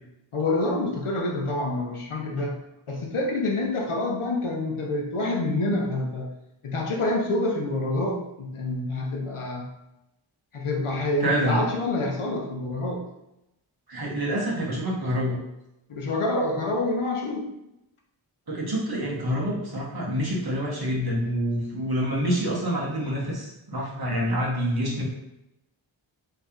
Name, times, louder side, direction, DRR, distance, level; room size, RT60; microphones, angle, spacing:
voice 1, 0.3-2.6 2.9-6.4 6.6-9.8 10.5-13.0 15.9-17.4, left 2 dB, 85° left, 1 dB, 0.8 m, -27 dB
voice 2, 11.2-11.6 13.9-15.4 18.5-25.0, equal, 50° right, -4 dB, 1.2 m, -27 dB
3.1 x 2.8 x 3.6 m, 0.87 s
wide cardioid pair, 45°, 49 cm